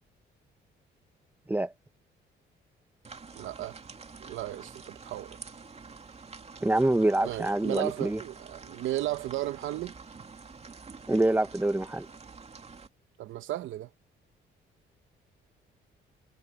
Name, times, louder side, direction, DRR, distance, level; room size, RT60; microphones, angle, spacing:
sound 1, 3.0-12.9, right 4 dB, 30° right, 2.4 m, -48 dB
voice 1, 3.3-3.8 4.2-5.4 7.2-9.9 13.2-13.9, right 14 dB, 80° right, 0.9 m, -34 dB
voice 2, 6.6-8.2 11.1-12.1, right 1 dB, 10° right, 1.2 m, -25 dB
cardioid pair, 90°, 20 cm